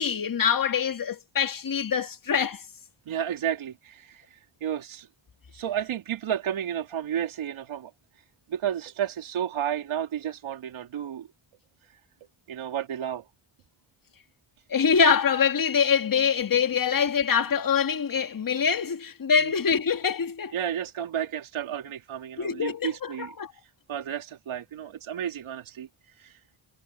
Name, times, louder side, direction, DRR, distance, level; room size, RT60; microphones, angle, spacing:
voice 1, 0.0-2.6 14.7-20.5 22.4-23.5, left 6 dB, 40° left, 2.1 m, -24 dB
voice 2, 3.1-5.1 5.5-11.3 11.8-12.0 12.5-13.3 19.4-19.5 20.5-26.4, right 9 dB, 70° right, 2.6 m, -32 dB
supercardioid pair, 50°, 50 cm